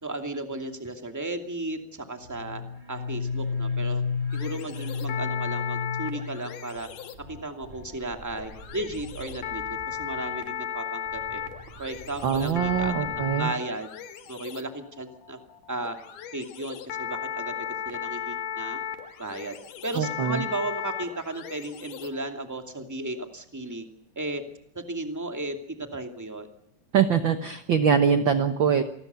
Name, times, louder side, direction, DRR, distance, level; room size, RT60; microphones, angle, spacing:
voice 1, 0.0-2.6 2.9-4.0 4.3-6.9 7.3-11.4 11.8-13.9 14.3-15.4 15.7-16.0 16.3-17.5 17.8-18.8 19.2-19.6 19.8-23.9 24.2-24.4 24.7-26.5, right 2 dB, 5° right, 5 dB, 1.9 m, -35 dB
sound 1, 2.2-10.4 11.1-13.4, left 5 dB, 35° right, 0.7 m, -34 dB
sound 2, 4.3-22.3, left 8 dB, 75° left, 3.1 m, -36 dB
voice 2, 12.2-13.5 20.0-20.4 26.9-28.8, right 7 dB, 60° right, 8 dB, 1.2 m, -23 dB
28.0 x 20.5 x 7.0 m, 0.73 s
omnidirectional pair, 3.8 m